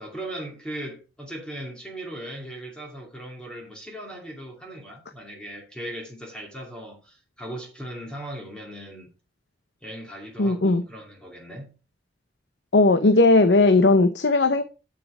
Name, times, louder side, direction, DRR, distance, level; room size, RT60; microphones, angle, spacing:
voice 1, 0.0-9.1 9.8-11.7, right 1 dB, 5° left, 2.6 m, -38 dB
voice 2, 10.4-10.8 12.7-14.6, left 2 dB, 75° left, 0.8 m, -17 dB
8.1 x 7.6 x 4.9 m
head